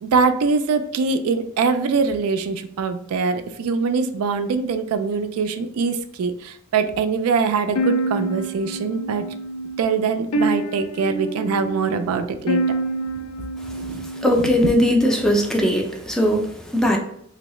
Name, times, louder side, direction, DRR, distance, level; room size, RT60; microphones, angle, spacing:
voice 1, 0.0-9.2 9.8-12.6 13.7-14.0 14.4-14.7, right 5 dB, 75° right, 8 dB, 0.3 m, -23 dB
sound 1, 7.7-14.9, right 1 dB, 90° left, 0.4 m, -27 dB
voice 2, 14.2-17.0, equal, 5° left, 2 dB, 0.4 m, -19 dB
3.1 x 2.7 x 3.0 m, 0.70 s
head